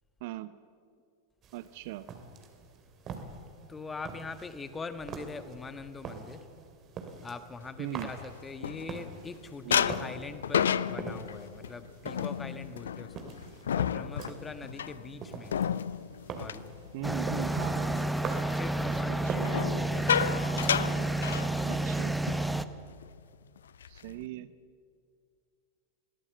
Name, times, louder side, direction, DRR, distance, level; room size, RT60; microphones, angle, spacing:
voice 1, 0.2-0.6 1.5-2.1 7.8-8.1 9.6-9.9 16.9-18.1 19.1-19.6 21.6-22.2 23.9-24.5, right 15 dB, 50° right, 15 dB, 0.7 m, -39 dB
sound 1, 1.4-21.0, right 5 dB, 30° right, 2.6 m, -45 dB
voice 2, 3.7-6.4 7.2-15.6 16.3-16.6 17.5-17.8 18.5-20.2, left 4 dB, 15° left, 11 dB, 1.4 m, -42 dB
sound 2, 7.8-9.3 9.7-17.5 17.9-18.2 19.4-22.0 22.3-22.5 22.8-23.1 23.6-24.2, left 8 dB, 65° left, 0.5 m, -32 dB
sound 3, 17.0-22.6, right 2 dB, ahead, 0.8 m, -30 dB
22.5 x 17.0 x 7.8 m, 2.3 s
figure-of-eight pair, 90°, 0 cm